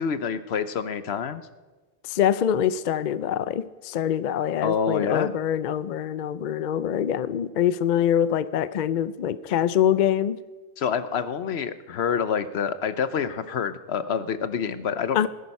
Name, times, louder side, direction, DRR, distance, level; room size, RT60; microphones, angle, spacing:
voice 1, 0.0-1.4 4.6-5.3 10.8-15.3, left 7 dB, 80° left, 13 dB, 1.1 m, -27 dB
voice 2, 2.1-10.4 15.1-15.3, left 9 dB, 55° left, 15 dB, 0.6 m, -24 dB
18.5 x 10.5 x 5.4 m, 1.2 s
omnidirectional pair, 1.1 m